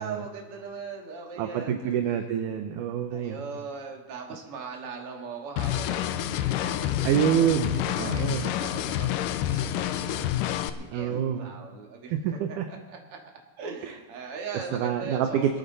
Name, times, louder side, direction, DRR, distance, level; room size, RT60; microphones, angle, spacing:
voice 1, 0.0-1.9 3.1-7.1 7.7-10.3 10.7-13.2 13.6-15.6, right 5 dB, 45° right, 1 dB, 2.4 m, -40 dB
voice 2, 1.4-3.4 7.0-8.5 10.9-11.5 12.1-12.7 14.7-15.6, right 9 dB, 75° right, 6 dB, 2.1 m, -27 dB
sound 1, 5.6-10.7, left 12 dB, 80° left, 2.1 m, -28 dB
23.0 x 9.5 x 4.1 m, 1.3 s
omnidirectional pair, 4.1 m